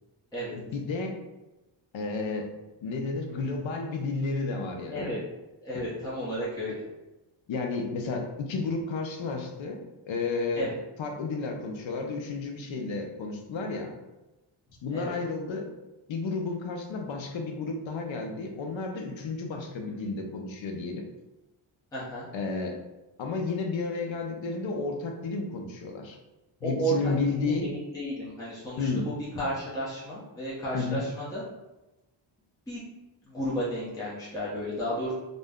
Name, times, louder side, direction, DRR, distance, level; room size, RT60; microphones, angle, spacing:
voice 1, 0.7-1.2 1.9-2.5 2.8-5.0 7.5-9.8 10.1-10.7 11.0-13.9 14.8-15.7 16.1-21.0 22.3-22.8 23.2-26.2 26.6-27.7 28.8-29.0 30.7-31.0, left 4 dB, 70° left, 3 dB, 0.6 m, -32 dB
voice 2, 5.6-6.8 10.5-10.8 14.9-15.1 21.9-22.3 26.6-27.1 27.4-31.4 32.7-32.8 33.2-35.1, right 1 dB, 5° left, -9 dB, 0.7 m, -33 dB
2.5 x 2.1 x 3.4 m, 1.0 s
wide cardioid pair, 110°, 49 cm